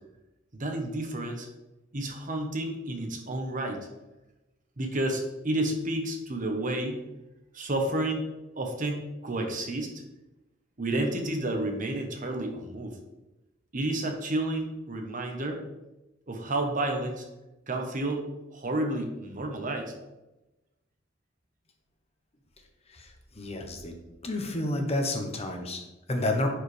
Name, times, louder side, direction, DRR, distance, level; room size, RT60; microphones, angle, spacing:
voice 1, 0.6-1.5 1.9-3.9 4.8-7.0 7.5-8.3 8.6-9.9 10.8-13.0 13.7-15.6 16.3-17.2 17.7-18.2 18.5-19.9, right 1 dB, 45° right, 3 dB, 1.1 m, -30 dB
voice 2, 23.4-23.9 24.2-26.5, left 1 dB, 35° left, 4 dB, 1.1 m, -30 dB
10.5 x 4.9 x 3.4 m, 1.0 s
head